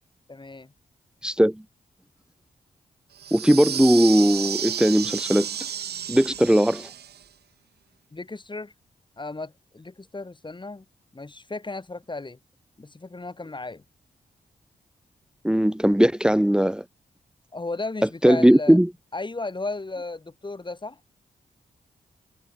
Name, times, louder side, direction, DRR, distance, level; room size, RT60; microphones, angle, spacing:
voice 1, 0.3-0.7 8.1-8.7 9.2-10.8 11.1-12.4 12.8-13.8 17.5-18.8 19.1-21.0, left 3 dB, 30° left, 2.8 m, -34 dB
voice 2, 1.2-1.6 3.3-5.5 6.1-6.9 15.4-16.8 18.2-18.9, equal, 5° right, 2.1 m, -19 dB
sound 1, 3.2-7.2, right 9 dB, 75° right, 1.3 m, -32 dB
cardioid pair, 60°, 17 cm